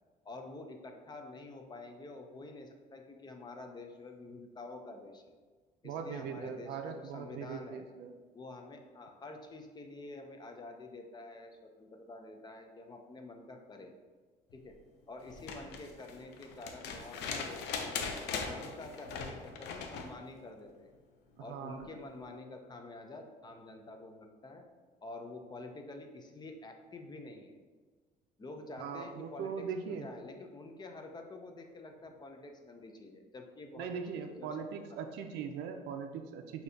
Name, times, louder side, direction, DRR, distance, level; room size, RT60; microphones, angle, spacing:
voice 1, 0.2-5.3 5.8-7.8 8.3-13.9 14.5-14.7 15.1-18.0 18.3-20.9 21.4-24.6 25.0-27.6 28.4-34.0 34.3-35.1, left 2 dB, 25° left, 4 dB, 0.5 m, -48 dB
voice 2, 5.8-8.1 21.4-21.9 28.8-30.1 33.8-36.6, right 6 dB, 85° right, 6 dB, 0.4 m, -40 dB
sound 1, 15.3-20.1 21.8-21.9, left 5 dB, 85° left, 0.5 m, -40 dB
6.2 x 2.7 x 2.7 m, 1.4 s
cardioid pair, 110°, 17 cm